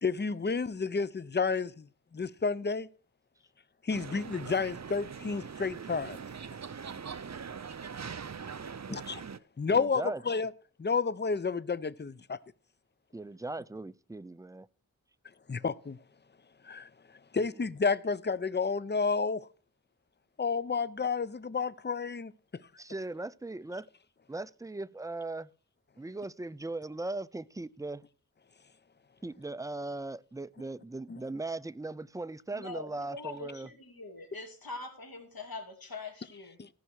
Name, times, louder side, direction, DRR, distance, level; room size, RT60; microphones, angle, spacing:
voice 1, 0.0-1.9 2.1-2.9 3.8-6.2 8.9-9.2 9.6-10.5 10.8-12.4 15.5-16.0 16.6-16.9 17.3-19.5 20.4-22.3 31.1-31.2 36.6-36.7, left 5 dB, 30° left, 0.6 m, -31 dB
sound 1, 3.9-9.4, right 6 dB, 50° right, 0.6 m, -42 dB
voice 2, 9.7-10.2 13.1-14.7 22.8-23.9 24.3-25.5 26.0-28.0 29.2-33.7, right 2 dB, 10° right, 0.4 m, -39 dB
voice 3, 32.5-36.6, left 3 dB, 80° left, 2.7 m, -43 dB
14.5 x 5.7 x 6.3 m
wide cardioid pair, 60°, 35 cm